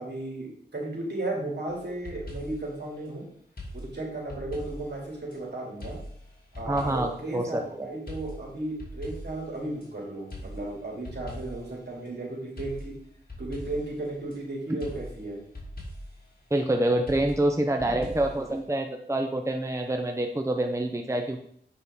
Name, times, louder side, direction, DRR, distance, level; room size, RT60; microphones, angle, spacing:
voice 1, 0.0-3.3 3.7-6.0 6.5-13.0 13.4-15.4, right 2 dB, 70° right, -2 dB, 2.9 m, -35 dB
sound 1, 1.7-2.8 3.6-5.4 5.8-7.3 8.1-9.9 10.3-11.8 12.6-14.4 14.8-16.2 17.1-18.6, left 1 dB, 55° left, 2.5 m, -41 dB
voice 2, 6.7-7.9 16.5-21.5, right 1 dB, 15° right, 4 dB, 0.8 m, -27 dB
8.1 x 5.6 x 3.8 m, 0.66 s
wide cardioid pair, 55°, 18 cm